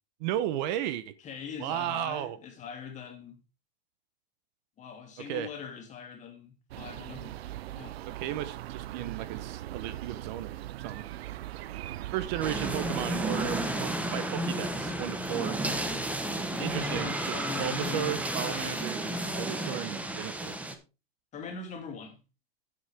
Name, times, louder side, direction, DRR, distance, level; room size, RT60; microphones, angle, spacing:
voice 1, 0.2-1.1 1.6-2.4 5.3-5.5 8.1-11.1 12.1-15.6 16.6-19.0 19.3-20.6, right 12 dB, 45° right, 0.8 m, -34 dB
voice 2, 1.2-3.4 4.8-8.0 16.5-19.3 19.6-20.2 21.3-22.2, left 6 dB, 25° left, 2.5 m, -42 dB
sound 1, 6.7-13.7, right 14 dB, 85° right, 0.6 m, -40 dB
sound 2, 12.4-20.8, right 1 dB, 5° right, 0.9 m, -32 dB
10.5 x 8.3 x 3.4 m
supercardioid pair, 145°, 31 cm